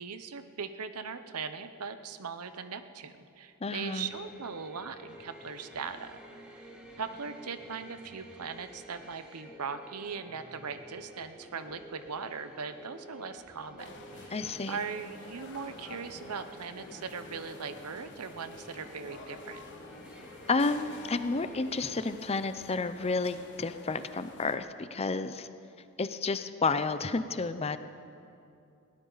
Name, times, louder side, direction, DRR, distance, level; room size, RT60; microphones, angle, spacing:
voice 1, 0.0-6.2 6.9-14.4 14.7-19.6, right 5 dB, 90° right, 10 dB, 0.9 m, -39 dB
voice 2, 3.6-4.1 14.3-14.8 20.5-25.5 26.0-27.8, left 3 dB, 25° left, 11 dB, 0.6 m, -31 dB
sound 1, 3.9-21.6, equal, 5° right, 2.3 m, -51 dB
sound 2, 13.8-24.6, left 3 dB, 55° left, 1.5 m, -49 dB
21.0 x 17.0 x 4.0 m, 2.6 s
head